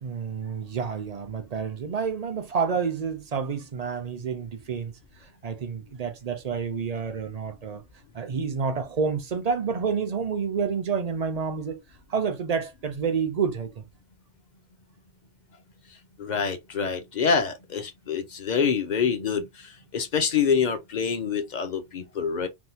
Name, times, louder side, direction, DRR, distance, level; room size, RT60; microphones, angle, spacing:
voice 1, 0.0-7.8 8.1-11.8 12.1-13.8, right 6 dB, 50° right, 0.5 m, -29 dB
voice 2, 16.2-19.5 19.9-22.5, left 6 dB, 50° left, 0.7 m, -26 dB
3.5 x 2.3 x 2.7 m
omnidirectional pair, 1.1 m